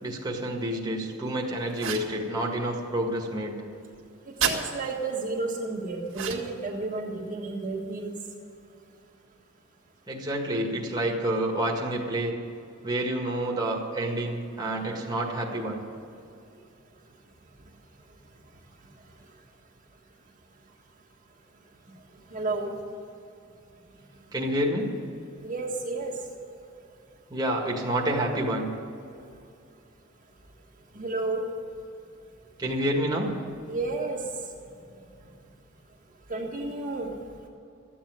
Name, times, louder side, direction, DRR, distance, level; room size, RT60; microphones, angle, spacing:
voice 1, 0.0-3.6 10.1-12.4 12.8-15.8 24.3-24.9 27.3-28.7 32.6-33.3, right 1 dB, 20° right, -2 dB, 1.8 m, -28 dB
sound 1, 1.7-2.1 4.4-4.6 6.1-6.6, right 7 dB, 70° right, 1.9 m, -29 dB
voice 2, 4.4-8.1 22.3-22.7 25.4-26.1 30.9-31.4 33.7-34.3 36.3-37.1, right 3 dB, 40° right, -2 dB, 1.6 m, -31 dB
14.0 x 8.6 x 9.4 m, 2.6 s
head